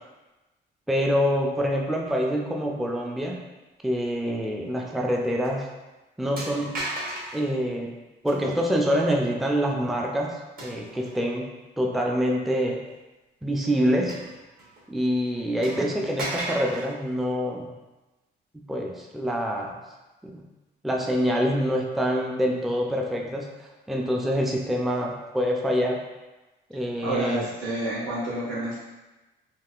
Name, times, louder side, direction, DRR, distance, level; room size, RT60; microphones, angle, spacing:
voice 1, 0.9-3.4 3.8-5.7 6.2-6.7 7.3-7.9 8.2-10.3 10.6-11.5 11.8-12.8 13.4-14.2 14.9-17.7 18.5-19.8 20.2-20.4 20.8-26.0 26.7-27.5, equal, ahead, -1 dB, 0.4 m, -26 dB
sound 1, 4.9-5.1 5.4-5.5 6.4-7.5 8.3-8.7 10.6-11.3 11.9-12.0 14.1-14.8 15.1-15.2 15.6-16.9, right 2 dB, 50° right, 1.0 m, -35 dB
voice 2, 27.0-28.8, right 1 dB, 90° right, -9 dB, 1.4 m, -29 dB
3.6 x 2.4 x 2.3 m, 1.1 s
cardioid pair, 90°, 20 cm